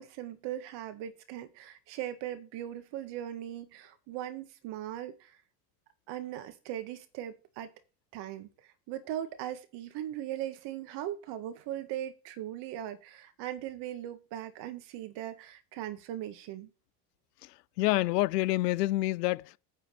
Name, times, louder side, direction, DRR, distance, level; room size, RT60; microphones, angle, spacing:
voice 1, 0.0-5.4 6.1-7.7 8.1-16.7, right 12 dB, 60° right, 2.0 m, -39 dB
voice 2, 17.4-19.6, left 18 dB, 85° left, 0.6 m, -28 dB
9.7 x 4.4 x 6.7 m
supercardioid pair, 95°, 47 cm